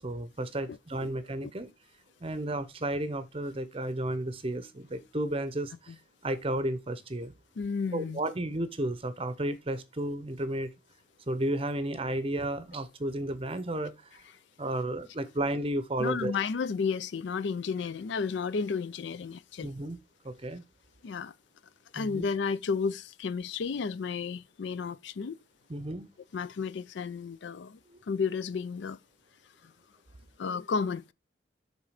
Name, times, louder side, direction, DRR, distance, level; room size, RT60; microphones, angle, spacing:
voice 1, 0.0-1.7 2.2-5.9 6.2-7.3 7.9-10.7 11.3-14.2 14.6-16.3 19.6-20.0 20.2-20.6 21.9-22.2 25.7-26.1 27.9-28.0, right 1 dB, 30° right, 0.7 m, -33 dB
voice 2, 7.6-8.2 16.0-19.7 21.0-21.3 21.9-25.4 26.3-27.8 28.1-29.0 29.6-29.7 30.4-31.1, left 5 dB, 60° left, 0.4 m, -32 dB
7.3 x 3.8 x 4.8 m
head